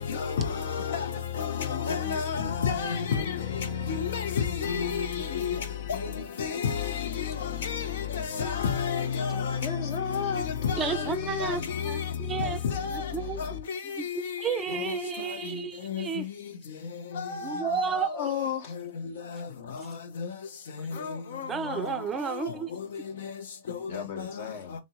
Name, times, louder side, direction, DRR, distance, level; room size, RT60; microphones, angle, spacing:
voice 1, 0.1-6.1 6.4-9.7 10.3-11.1 11.4-12.1 12.4-13.1 13.4-14.4 14.7-15.0 15.9-16.1 17.2-18.4 20.2-20.3 20.9-21.9 22.4-22.5 24.2-24.3, left 7 dB, 65° left, 0.6 m, -31 dB
voice 2, 9.6-10.5 10.8-11.6 17.1-18.7 23.9-24.7, left 8 dB, 50° left, 1.1 m, -34 dB
voice 3, 10.8-12.6 12.9-13.5 13.9-16.3 17.4-18.3 20.9-21.0 21.5-22.7, right 7 dB, 20° right, 0.4 m, -32 dB
3.8 x 2.0 x 3.5 m
figure-of-eight pair, 105°, 0 cm